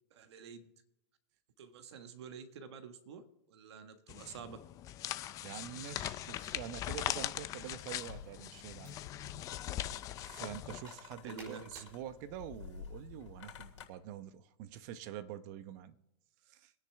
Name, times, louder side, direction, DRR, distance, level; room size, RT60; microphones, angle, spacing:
voice 1, 0.1-0.7 1.6-4.6 11.2-11.6, right 6 dB, 65° right, 1.5 m, -49 dB
sound 1, 4.1-10.8, left 13 dB, 20° left, 0.5 m, -41 dB
voice 2, 5.4-9.0 10.2-16.0 16.5-16.7, right 10 dB, 40° right, 0.9 m, -46 dB
sound 2, 6.2-12.0, right 2 dB, 25° right, 5.4 m, -61 dB
sound 3, 7.9-13.9, left 8 dB, 75° left, 2.9 m, -51 dB
25.0 x 9.9 x 3.5 m
hypercardioid pair, 150°, 15 cm